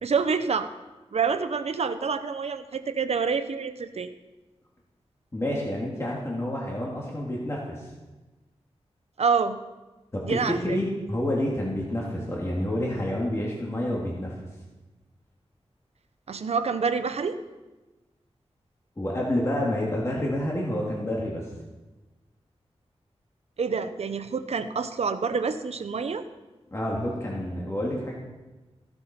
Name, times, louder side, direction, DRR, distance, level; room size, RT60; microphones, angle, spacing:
voice 1, 0.0-0.7 1.1-4.1 9.2-9.6 10.2-10.8 16.3-17.4 23.6-26.2, right 5 dB, 70° right, 10 dB, 0.8 m, -27 dB
voice 2, 5.3-7.9 10.1-14.3 19.0-21.5 26.7-28.1, left 1 dB, 25° left, -4 dB, 2.3 m, -28 dB
15.5 x 11.5 x 4.3 m, 1.1 s
wide cardioid pair, 120°, 11 cm